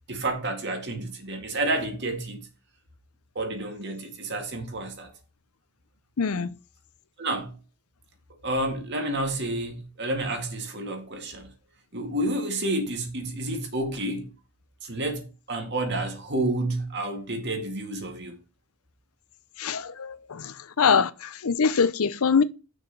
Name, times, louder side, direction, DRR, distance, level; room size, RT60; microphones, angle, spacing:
voice 1, 0.1-2.5 3.4-5.1 7.2-7.5 8.4-11.5 11.9-14.3 14.8-18.4, right 1 dB, 50° right, 2.1 m, -30 dB
voice 2, 6.2-6.5 19.6-22.4, left 6 dB, 75° left, 0.6 m, -24 dB
6.4 x 4.8 x 5.9 m
head